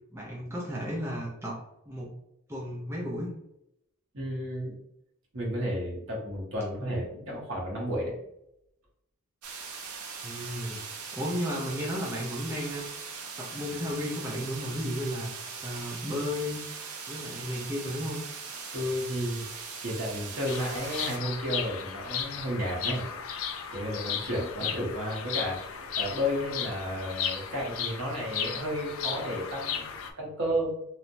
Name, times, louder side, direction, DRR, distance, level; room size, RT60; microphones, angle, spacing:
voice 1, 0.1-1.6 1.9-2.1 2.5-3.3 10.2-10.8 11.1-13.0 13.4-15.3 15.6-16.6 17.1-18.2 24.6-24.7, equal, 10° right, -4 dB, 0.4 m, -34 dB
voice 2, 4.1-4.7 5.3-8.1 18.7-23.2 23.7-30.7, equal, 60° right, -3 dB, 0.9 m, -32 dB
sound 1, 9.4-21.2, right 5 dB, 80° right, 0.5 m, -40 dB
Bird vocalization bird call bird song, 20.5-30.1, left 7 dB, 65° left, 0.3 m, -35 dB
3.0 x 2.1 x 2.5 m, 0.79 s
head